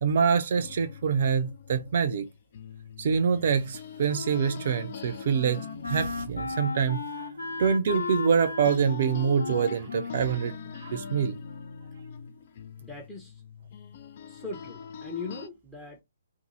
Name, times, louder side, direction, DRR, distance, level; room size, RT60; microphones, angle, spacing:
voice 1, 0.0-2.3 3.0-7.0 7.6-10.5 10.8-11.4, right 6 dB, 45° right, 0.5 m, -25 dB
sound 1, 0.5-8.4 8.6-15.5, left 7 dB, 40° left, 0.4 m, -44 dB
Wind instrument woodwind instrument, 4.3-12.1, left 3 dB, 75° left, 0.8 m, -37 dB
voice 2, 12.8-13.3 14.3-16.0, left 4 dB, 5° left, 0.7 m, -39 dB
2.6 x 2.6 x 3.8 m
figure-of-eight pair, 130°, 0 cm